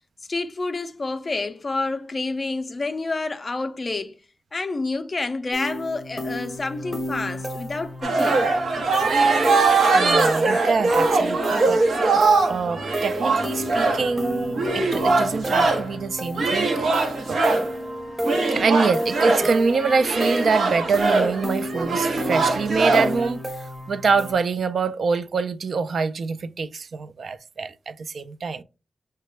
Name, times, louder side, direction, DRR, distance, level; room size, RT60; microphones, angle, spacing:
voice 1, 0.3-4.2 4.5-8.4, left 3 dB, 35° left, 0.3 m, -28 dB
sound 1, 5.5-24.3, equal, 10° right, 0.7 m, -32 dB
sound 2, 8.0-15.9 16.3-17.7 18.2-23.3, right 3 dB, 85° right, 0.8 m, -22 dB
voice 2, 9.9-11.8 12.5-17.4 18.5-23.4 23.9-28.6, right 4 dB, 70° right, 0.3 m, -25 dB
5.6 x 2.2 x 3.1 m
wide cardioid pair, 145°, 0 cm